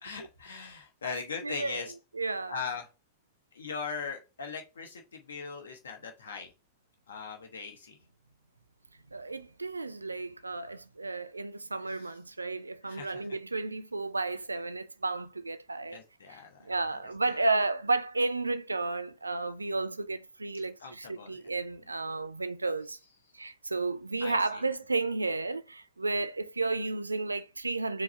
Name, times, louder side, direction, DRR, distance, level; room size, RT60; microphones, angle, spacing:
voice 1, 0.0-1.9 2.5-2.9 3.5-6.5 7.1-8.0 11.9-12.1 12.8-13.2 15.9-16.6 17.3-17.4 20.8-21.4 24.2-24.6, left 5 dB, 70° left, 0.7 m, -39 dB
voice 2, 1.1-1.9 2.1-2.6 9.1-16.0 16.3-16.4 16.6-23.0 23.3-28.0, right 3 dB, 80° right, 0.3 m, -32 dB
4.7 x 2.0 x 4.5 m
figure-of-eight pair, 90°, 0 cm